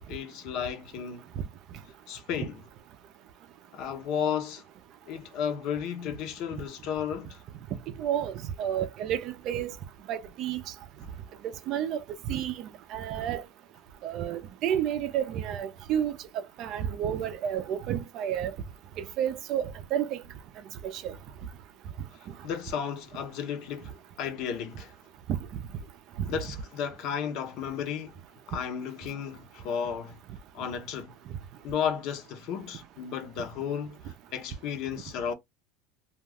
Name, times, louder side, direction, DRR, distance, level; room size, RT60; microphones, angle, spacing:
voice 1, 0.1-1.2 2.1-2.6 3.7-4.6 5.1-7.4 22.4-24.9 26.3-28.1 28.5-30.2 30.5-31.1 31.6-34.0 34.3-35.3, left 8 dB, 50° left, 0.7 m, -33 dB
voice 2, 8.0-9.7 10.1-10.6 11.7-12.0 12.3-13.4 14.0-16.2 16.6-18.5 19.0-20.2 20.8-21.2, right 10 dB, 45° right, 0.5 m, -30 dB
2.4 x 2.3 x 3.4 m
supercardioid pair, 140°, 0 cm